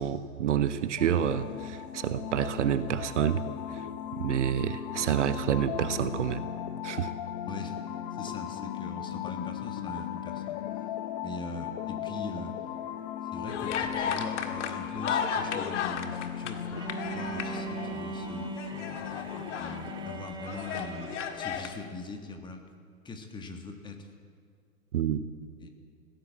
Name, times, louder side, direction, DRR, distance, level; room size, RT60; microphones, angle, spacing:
voice 1, 0.0-3.4 3.7-3.9 4.1-6.4 6.8-7.1 24.9-25.2, right 9 dB, 55° right, 12 dB, 1.1 m, -28 dB
sound 1, 1.0-20.2, left 10 dB, 30° left, 0.9 m, -37 dB
voice 2, 7.4-7.8 8.1-10.6 11.2-12.5 13.3-18.5 19.5-22.6 23.0-24.1 25.6-25.7, left 2 dB, 10° left, 5 dB, 1.7 m, -41 dB
sound 2, 13.5-18.0 18.4-19.8 20.3-21.7, left 7 dB, 55° left, 2.0 m, -34 dB
Bowed string instrument, 16.7-21.6, right 7 dB, 10° right, 0.9 m, -40 dB
19.5 x 16.0 x 8.4 m, 2.1 s
hypercardioid pair, 125°, 43 cm